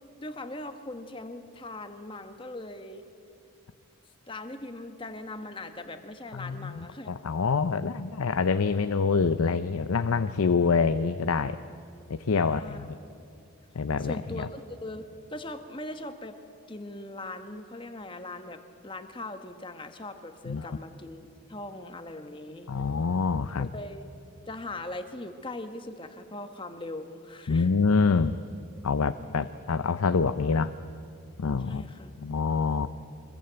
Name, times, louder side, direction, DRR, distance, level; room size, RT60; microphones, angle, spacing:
voice 1, 0.2-3.0 4.3-7.1 12.3-13.0 14.0-16.4 16.7-22.7 23.6-24.1 24.5-27.7 29.2-29.5 31.6-32.1, left 2 dB, 25° left, 7 dB, 1.3 m, -40 dB
voice 2, 6.3-6.7 7.1-11.6 12.1-12.9 13.7-14.5 20.5-20.8 22.7-23.7 27.5-28.3 28.8-30.7 31.4-31.9 32.2-32.9, left 4 dB, 85° left, 11 dB, 0.6 m, -26 dB
24.0 x 21.5 x 8.0 m, 2.5 s
head